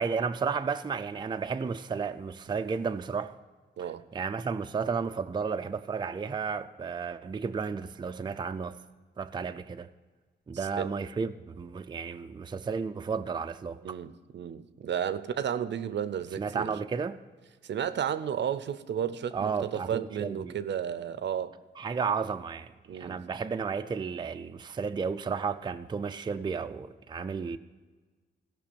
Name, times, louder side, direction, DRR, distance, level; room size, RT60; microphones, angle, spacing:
voice 1, 0.0-3.4 3.8-8.8 9.2-9.9 10.5-14.0 16.4-17.2 19.3-20.6 21.8-27.6, right 5 dB, 25° right, 0.4 m, -33 dB
voice 2, 13.8-16.7 17.6-21.5 22.9-23.2, right 9 dB, 75° right, 0.6 m, -33 dB
16.0 x 6.0 x 6.8 m
wide cardioid pair, 150°, 19 cm